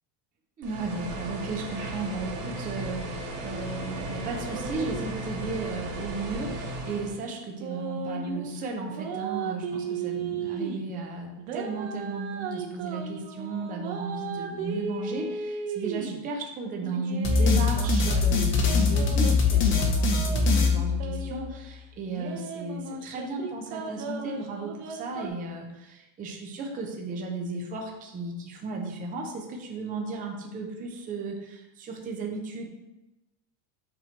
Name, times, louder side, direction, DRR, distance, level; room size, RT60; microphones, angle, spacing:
voice 1, 0.6-32.7, right 3 dB, 20° right, 1 dB, 0.6 m, -35 dB
sound 1, 0.6-7.1, right 1 dB, 80° right, 2.0 m, -35 dB
sound 2, 7.6-8.5 8.9-10.8 11.4-16.2 16.8-21.6 22.1-25.3, right 5 dB, 60° right, 0.8 m, -35 dB
sound 3, 17.2-21.5, left 4 dB, 25° left, 0.6 m, -23 dB
7.5 x 3.0 x 4.5 m, 0.99 s
cardioid pair, 155°, 46 cm